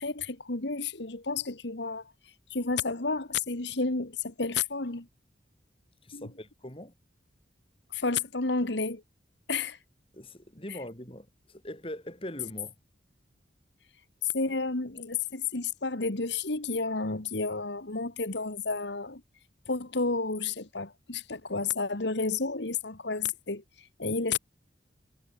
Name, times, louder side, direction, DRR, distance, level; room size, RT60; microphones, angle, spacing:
voice 1, 0.0-5.1 6.1-6.3 7.9-9.0 9.5-9.8 10.7-10.8 14.2-19.2 19.7-24.4, left 4 dB, 70° left, 1.9 m, -31 dB
voice 2, 6.0-6.9 10.1-12.7, left 1 dB, 30° left, 4.1 m, -41 dB
head